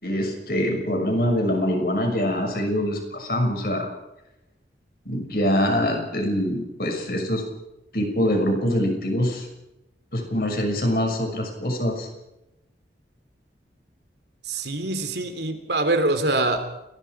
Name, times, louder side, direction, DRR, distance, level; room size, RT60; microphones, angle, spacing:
voice 1, 0.0-3.9 5.0-7.4 7.9-9.5 10.1-12.1, equal, 55° left, 3 dB, 6.2 m, -24 dB
voice 2, 14.5-16.8, right 2 dB, 75° right, 8 dB, 3.2 m, -24 dB
30.0 x 20.5 x 4.8 m, 0.91 s
head